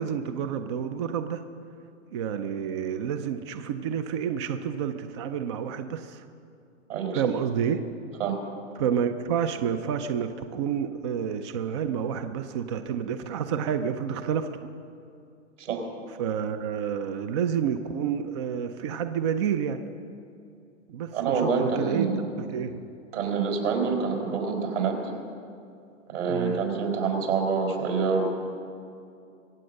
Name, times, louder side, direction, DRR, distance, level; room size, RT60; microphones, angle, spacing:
voice 1, 0.0-1.4 2.1-6.2 7.1-7.8 8.8-14.5 16.2-19.8 20.9-22.1 22.4-22.8 26.3-26.6, right 8 dB, 25° right, 9 dB, 0.4 m, -29 dB
voice 2, 6.9-7.2 8.2-8.4 15.6-15.8 21.1-22.2 23.1-25.0 26.1-28.3, right 5 dB, 70° right, 2 dB, 4.3 m, -26 dB
23.5 x 8.5 x 6.4 m, 2.5 s
hypercardioid pair, 140°, 37 cm